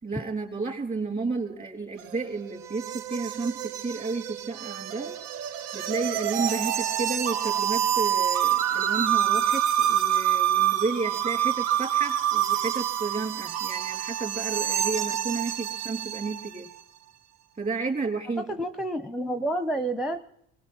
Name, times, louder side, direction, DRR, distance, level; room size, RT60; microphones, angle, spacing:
voice 1, 0.0-5.2 5.7-16.7 17.6-18.5, right 4 dB, 30° right, 1 dB, 3.5 m, -32 dB
sound 1, 2.0-16.6, right 10 dB, 85° right, 0.6 m, -27 dB
voice 2, 18.4-20.2, right 1 dB, ahead, 8 dB, 0.8 m, -29 dB
23.0 x 19.0 x 3.0 m, 0.75 s
supercardioid pair, 70°, 30 cm